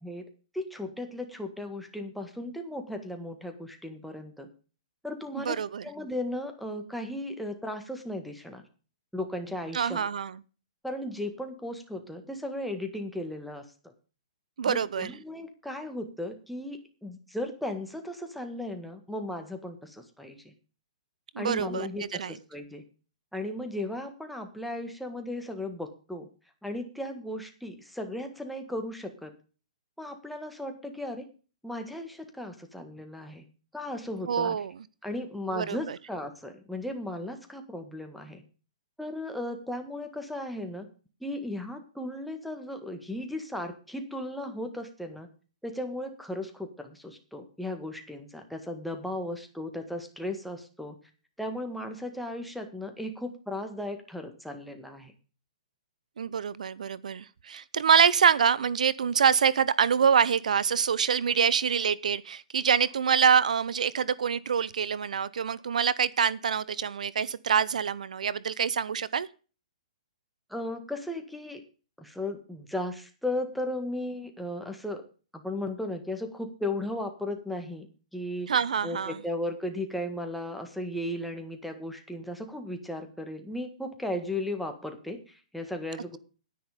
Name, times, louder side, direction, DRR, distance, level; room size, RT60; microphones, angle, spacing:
voice 1, 0.5-4.5 5.0-5.6 5.8-8.6 9.1-10.1 10.8-13.9 14.6-20.4 21.4-22.8 23.3-26.3 26.6-29.3 30.0-31.2 31.6-33.4 33.7-34.6 35.0-38.4 39.0-40.9 41.2-45.3 45.6-51.0 51.4-55.1 70.5-71.6 72.0-75.0 75.3-77.9 78.1-78.5 78.8-86.2, left 1 dB, ahead, 4 dB, 1.7 m, -36 dB
voice 2, 5.4-5.8 9.7-10.4 14.6-15.1 21.3-22.4 34.3-34.7 35.5-36.0 56.2-69.3 78.5-79.2, right 7 dB, 80° right, 20 dB, 0.7 m, -25 dB
10.5 x 10.0 x 5.1 m, 0.36 s
hypercardioid pair, 155°, 4 cm